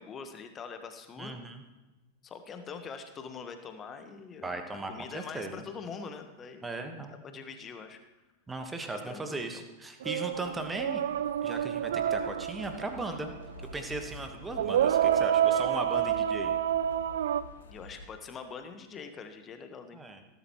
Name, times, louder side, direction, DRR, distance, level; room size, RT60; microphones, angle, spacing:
voice 1, 0.0-1.4 2.2-6.7 7.0-7.1 7.3-8.0 8.9-9.7 17.7-20.0, left 5 dB, 25° left, 7 dB, 1.4 m, -44 dB
voice 2, 1.2-1.6 4.4-5.6 6.6-7.1 8.5-11.0 11.4-13.3 13.7-16.6 19.9-20.2, right 2 dB, 10° right, 6 dB, 1.4 m, -37 dB
sound 1, 10.0-13.3 14.6-17.4, right 10 dB, 60° right, 0.4 m, -28 dB
sound 2, 10.3-18.1, left 3 dB, 65° left, 1.2 m, -49 dB
17.5 x 11.0 x 3.1 m, 1.1 s
figure-of-eight pair, 90°, 0 cm